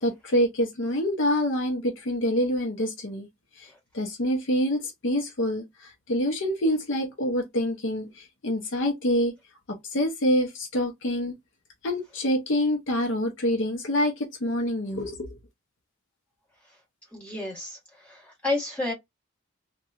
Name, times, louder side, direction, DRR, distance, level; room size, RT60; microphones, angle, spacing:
voice 1, 0.0-3.3 3.6-9.3 9.7-11.3 11.8-15.3, equal, 55° left, 0.6 m, -26 dB
voice 2, 17.1-17.8 18.0-18.9, left 2 dB, 5° left, 1.3 m, -30 dB
2.8 x 2.2 x 2.3 m
head